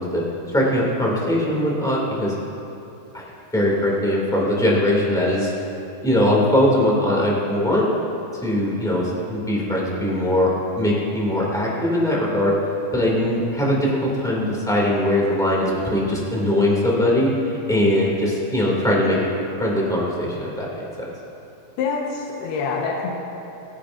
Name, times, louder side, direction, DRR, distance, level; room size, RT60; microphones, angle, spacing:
voice 1, 0.0-2.3 3.1-3.2 3.5-5.5 6.0-7.9 8.4-12.5 12.9-19.2 19.6-20.8, left 1 dB, ahead, -5 dB, 1.2 m, -21 dB
voice 2, 21.8-23.1, left 5 dB, 85° left, -2 dB, 3.2 m, -25 dB
18.5 x 15.5 x 2.6 m, 2.8 s
omnidirectional pair, 4.5 m